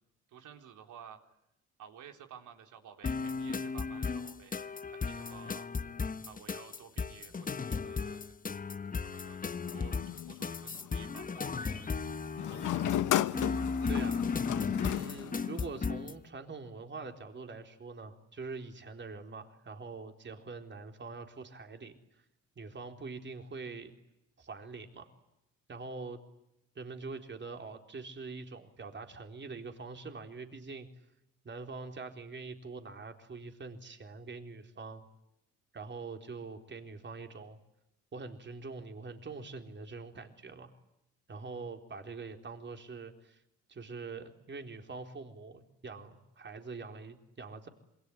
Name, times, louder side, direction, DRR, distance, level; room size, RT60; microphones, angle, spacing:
voice 1, 0.3-1.2 1.8-4.6 4.9-5.7 6.3-8.4 9.0-12.0 12.5-12.8, right 8 dB, 80° right, 5 dB, 3.8 m, -53 dB
sound 1, 3.0-16.2, left 5 dB, 25° left, 1.2 m, -35 dB
sound 2, 9.7-11.0 12.4-15.9, left 13 dB, 80° left, 1.1 m, -34 dB
voice 2, 13.9-14.2 14.8-22.0 22.6-23.9 24.4-25.1 25.7-26.2 26.8-30.9 31.4-35.1 35.7-37.6 38.1-40.7 41.3-43.4 43.7-47.7, right 4 dB, 40° right, 5 dB, 4.1 m, -44 dB
27.0 x 23.0 x 9.7 m, 0.84 s
cardioid pair, 90°, 30 cm